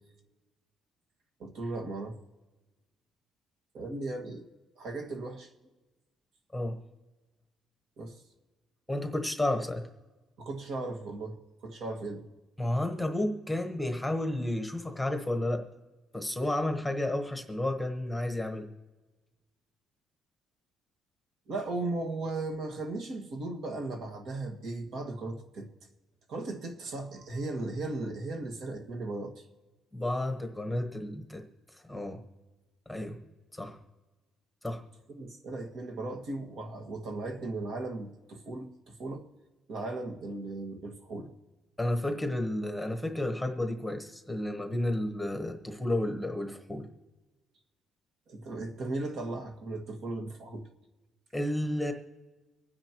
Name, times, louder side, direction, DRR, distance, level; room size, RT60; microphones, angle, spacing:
voice 1, 1.4-2.2 3.7-4.5 4.8-5.5 8.0-8.2 10.4-12.3 21.5-25.7 26.3-29.4 35.1-39.3 39.7-41.3 48.3-50.7, right 2 dB, 60° right, 2 dB, 1.8 m, -37 dB
voice 2, 8.9-9.8 12.6-15.6 16.1-18.7 29.9-31.4 31.9-32.2 32.9-33.2 33.5-33.8 34.6-34.8 41.8-46.9 51.3-51.9, left 1 dB, 5° left, 5 dB, 1.1 m, -31 dB
25.0 x 9.7 x 3.0 m, 1.2 s
cardioid pair, 150°, 0 cm